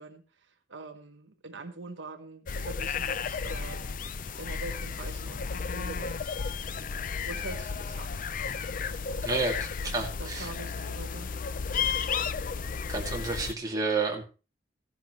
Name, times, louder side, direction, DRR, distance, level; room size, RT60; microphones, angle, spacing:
voice 1, 0.0-4.0 4.4-6.4 7.2-8.3 9.8-11.3, right 3 dB, 80° right, 6 dB, 1.2 m, -44 dB
sound 1, 2.5-13.5, left 5 dB, 45° left, 0.5 m, -33 dB
sound 2, 7.6-12.3, left 1 dB, 70° left, 5.3 m, -59 dB
voice 2, 9.2-10.5 12.9-14.2, right 3 dB, 20° right, -1 dB, 2.4 m, -30 dB
15.5 x 10.5 x 3.2 m, 0.34 s
head